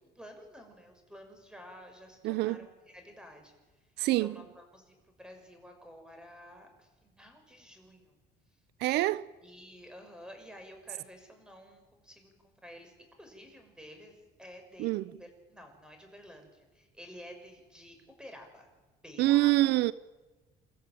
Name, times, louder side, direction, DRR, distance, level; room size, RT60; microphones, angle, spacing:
voice 1, 0.1-3.9 4.2-8.2 9.4-14.9 15.2-18.7 19.0-19.7, equal, 5° right, 6.4 m, -51 dB
voice 2, 2.2-2.6 4.0-4.4 8.8-9.3 14.8-15.0 19.2-19.9, right 17 dB, 80° right, 0.6 m, -26 dB
29.0 x 14.0 x 9.1 m
cardioid pair, 110°, 17 cm